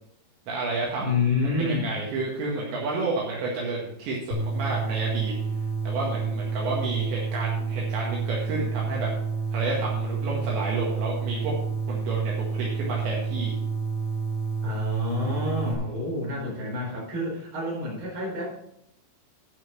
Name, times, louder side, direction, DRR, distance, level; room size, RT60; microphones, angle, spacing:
voice 1, 0.5-1.2 1.6-5.3 5.8-9.1 9.5-11.5 11.9-13.5, right 3 dB, 70° right, -3 dB, 3.8 m, -30 dB
voice 2, 1.0-1.9 14.6-18.5, left 3 dB, 25° right, -3 dB, 4.4 m, -28 dB
sound 1, 4.3-15.7, right 5 dB, 35° left, 2.4 m, -29 dB
12.0 x 5.9 x 5.7 m, 0.73 s
omnidirectional pair, 5.7 m